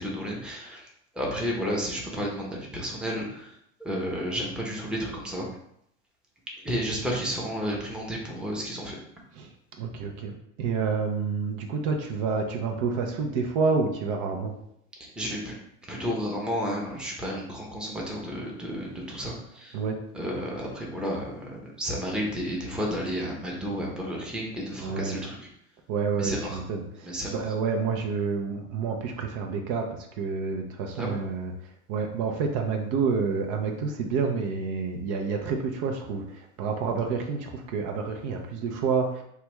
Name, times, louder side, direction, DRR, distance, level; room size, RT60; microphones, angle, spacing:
voice 1, 0.0-5.5 6.6-9.0 15.2-15.5 15.9-19.8 20.1-25.5 26.1-26.6 27.0-27.4 30.9-31.2, equal, ahead, -2 dB, 0.7 m, -32 dB
voice 2, 9.8-14.5 19.7-20.0 24.8-25.2 25.9-31.5 31.9-39.2, right 5 dB, 60° right, 3 dB, 0.6 m, -29 dB
3.2 x 2.3 x 3.0 m, 0.73 s
supercardioid pair, 105°, 36 cm